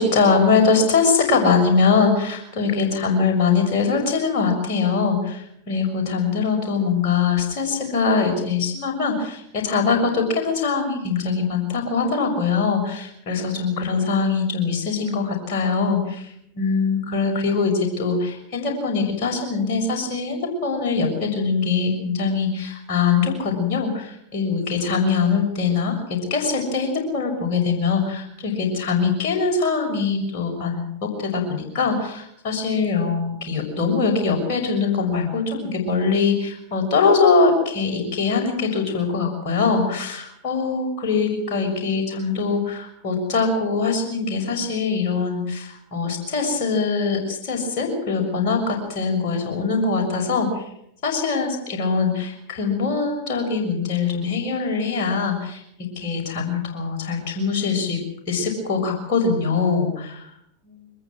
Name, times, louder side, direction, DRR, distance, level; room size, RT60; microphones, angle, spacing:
voice 1, 0.0-50.6 51.0-58.0 58.3-60.3 60.7-60.8, left 4 dB, 45° left, 1 dB, 6.6 m, -22 dB
23.0 x 20.5 x 6.3 m, 0.73 s
figure-of-eight pair, 90°, 0 cm